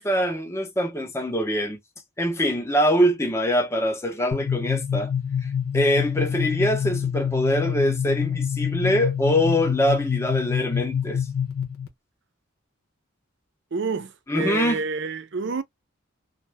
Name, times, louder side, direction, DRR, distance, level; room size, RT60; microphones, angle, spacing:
voice 1, 0.0-1.8 2.2-5.1 5.4-11.2 14.3-14.8, equal, 10° left, 0.6 m, -24 dB
sound 1, 4.3-11.9, left 8 dB, 85° left, 0.9 m, -26 dB
voice 2, 13.7-15.6, right 4 dB, 55° right, 0.5 m, -28 dB
2.6 x 2.1 x 3.2 m
head